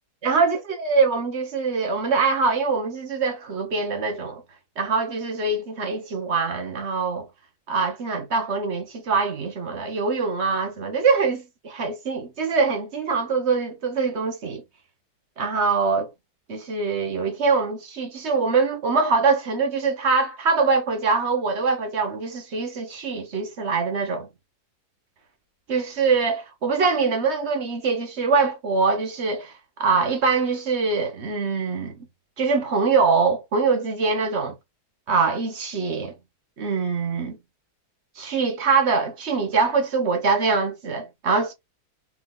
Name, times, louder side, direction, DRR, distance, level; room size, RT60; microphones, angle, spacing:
voice 1, 0.2-4.4 4.8-7.3 7.7-14.6 15.4-16.1 16.5-24.3 25.7-29.5 29.8-32.0 32.4-34.5 35.1-36.1 36.6-37.4 38.2-41.5, right 4 dB, 40° right, 1.3 m, -23 dB
4.6 x 2.8 x 3.8 m
omnidirectional pair, 2.0 m